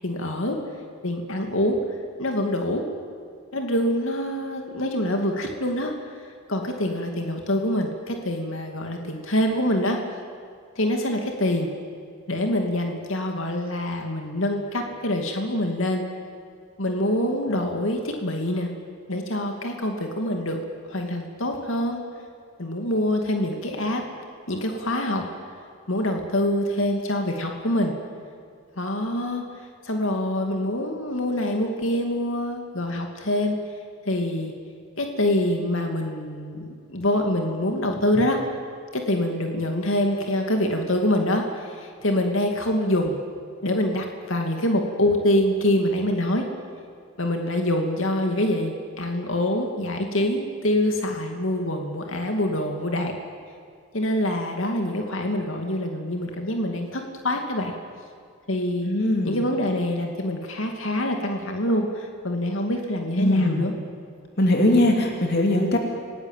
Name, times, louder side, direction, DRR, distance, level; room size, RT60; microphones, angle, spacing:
voice 1, 0.0-0.6 1.0-1.8 2.2-2.9 3.5-5.9 6.5-10.0 10.8-11.7 12.3-16.0 16.8-18.7 19.1-20.6 20.9-22.0 22.6-24.0 24.5-25.2 25.9-27.9 28.8-29.4 29.8-33.6 34.1-34.5 35.0-38.4 38.9-43.2 43.6-46.4 47.2-53.1 53.9-57.7 58.5-58.9 59.2-63.7, left 1 dB, 65° left, 3 dB, 2.5 m, -25 dB
voice 2, 58.8-59.4 63.2-63.6 64.4-65.8, left 1 dB, 50° left, 1 dB, 2.9 m, -20 dB
28.5 x 19.0 x 9.1 m, 2.3 s
head